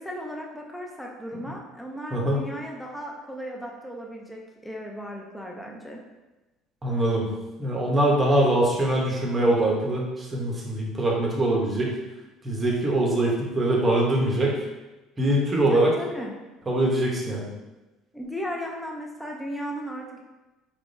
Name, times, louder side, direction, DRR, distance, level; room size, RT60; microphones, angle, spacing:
voice 1, 0.0-6.0 15.7-16.3 18.1-20.2, equal, ahead, -1 dB, 0.4 m, -35 dB
voice 2, 2.1-2.4 6.8-7.3 7.6-11.9 12.4-14.6 15.2-15.9 16.7-17.5, right 1 dB, 15° right, -3 dB, 0.8 m, -23 dB
4.5 x 3.5 x 2.6 m, 1.1 s
cardioid pair, 175°, 0 cm